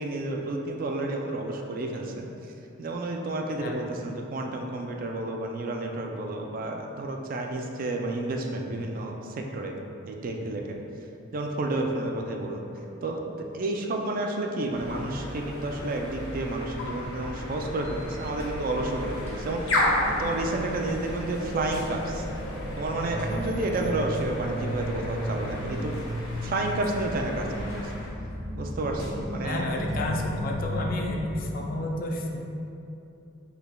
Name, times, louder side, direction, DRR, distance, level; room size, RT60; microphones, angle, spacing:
voice 1, 0.0-2.3 2.8-9.7 10.1-10.8 11.3-22.2 22.8-25.9 26.4-27.9 28.6-29.8, right 2 dB, 40° right, 2 dB, 0.3 m, -31 dB
voice 2, 3.6-3.9 29.4-32.4, left 1 dB, 45° left, 1 dB, 0.4 m, -31 dB
sound 1, 14.7-28.1, left 1 dB, 85° left, 0.9 m, -33 dB
sound 2, 16.6-31.4, equal, 10° left, 0.7 m, -37 dB
5.7 x 3.4 x 2.2 m, 2.8 s
head